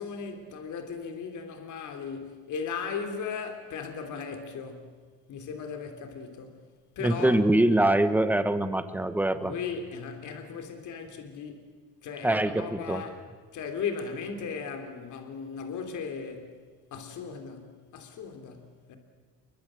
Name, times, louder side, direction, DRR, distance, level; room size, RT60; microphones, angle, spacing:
voice 1, 0.0-5.0 5.3-6.6 7.0-7.4 9.4-11.6 12.0-13.2 13.5-16.6 16.9-19.0, left 6 dB, 50° left, 3.5 m, -37 dB
voice 2, 7.0-9.5 12.2-13.0, right 1 dB, 5° right, 1.3 m, -24 dB
28.0 x 23.5 x 7.8 m
cardioid pair, 160°, 37 cm